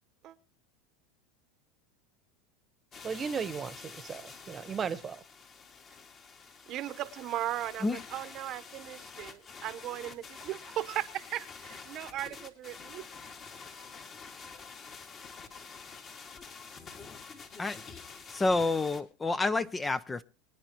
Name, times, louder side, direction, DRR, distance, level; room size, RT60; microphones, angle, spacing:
sound 1, 2.9-19.0, left 5 dB, 35° left, 2.4 m, -48 dB
voice 1, 3.0-5.2, right 6 dB, 25° right, 1.2 m, -36 dB
voice 2, 6.7-13.0, right 13 dB, 45° right, 1.1 m, -37 dB
voice 3, 18.3-20.2, left 3 dB, 15° left, 0.7 m, -29 dB
23.5 x 10.0 x 3.1 m
hypercardioid pair, 105°, 0 cm